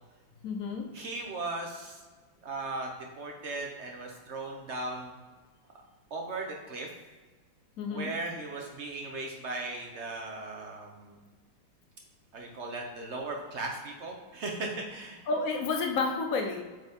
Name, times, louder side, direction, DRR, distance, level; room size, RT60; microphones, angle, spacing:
voice 1, 0.4-0.9 7.8-8.1 15.3-16.6, left 4 dB, 65° left, 4 dB, 0.8 m, -30 dB
voice 2, 0.9-2.0 2.4-2.9 3.2-5.1 6.1-6.9 7.9-11.2 12.3-15.3, right 2 dB, 70° right, 1 dB, 0.6 m, -37 dB
8.1 x 4.0 x 3.5 m, 1.3 s
omnidirectional pair, 2.2 m